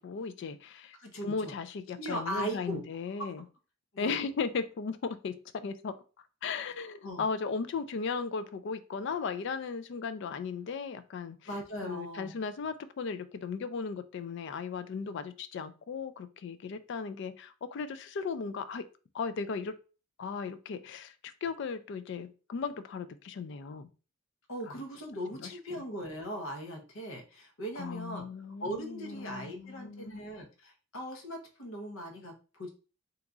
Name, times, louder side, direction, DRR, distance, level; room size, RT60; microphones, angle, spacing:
voice 1, 0.0-1.0 1.2-3.4 4.0-6.0 6.4-11.4 11.8-18.8 19.1-19.8 20.2-23.9 25.4-25.8 27.8-30.2, left 5 dB, 60° left, 12 dB, 0.3 m, -36 dB
voice 2, 1.0-1.5 2.0-2.8 3.2-3.3 3.9-4.2 7.0-7.2 11.5-12.4 24.5-28.2 28.6-32.7, equal, 90° left, 3 dB, 0.8 m, -39 dB
2.8 x 2.4 x 3.7 m, 0.35 s
head